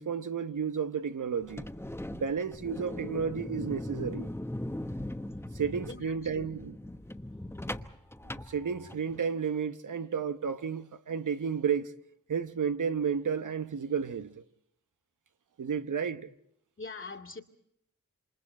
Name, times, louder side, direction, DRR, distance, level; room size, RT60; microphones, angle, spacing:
voice 1, 0.0-1.7 2.1-4.3 5.5-6.8 8.5-11.9 12.3-14.4 15.6-16.3, right 6 dB, 80° right, 1.0 m, -32 dB
sound 1, 1.4-9.2, left 1 dB, 10° left, 1.1 m, -40 dB
voice 2, 5.9-6.5 16.8-17.4, left 4 dB, 40° left, 2.3 m, -43 dB
28.5 x 26.5 x 4.3 m
wide cardioid pair, 75°, 31 cm